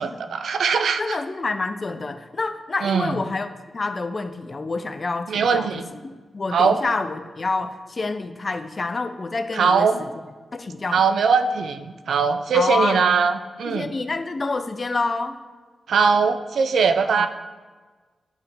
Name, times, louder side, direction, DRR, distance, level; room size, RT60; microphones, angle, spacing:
voice 1, 0.0-1.2 2.8-3.1 5.3-5.9 6.5-6.8 9.5-10.0 10.9-13.9 15.9-17.3, right 5 dB, 80° right, 9 dB, 0.4 m, -21 dB
voice 2, 1.0-10.1 10.5-11.0 12.5-13.0 13.6-15.4 17.1-17.3, left 3 dB, 50° left, 9 dB, 0.5 m, -28 dB
9.6 x 3.6 x 3.4 m, 1.4 s
supercardioid pair, 40°, 0 cm